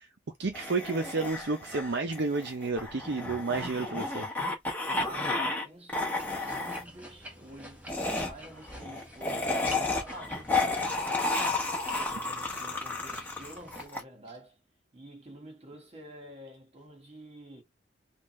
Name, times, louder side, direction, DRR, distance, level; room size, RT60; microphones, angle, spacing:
voice 1, 0.4-4.3, right 3 dB, 65° right, 0.7 m, -31 dB
sound 1, 0.5-5.6 5.9-6.8 7.9-14.0, left 3 dB, 10° left, 1.2 m, -32 dB
voice 2, 5.0-11.7 12.1-14.6 14.9-17.6, right 1 dB, 35° right, 1.6 m, -49 dB
sound 2, 6.2-13.9, equal, 10° right, 1.2 m, -49 dB
3.6 x 2.5 x 3.1 m
head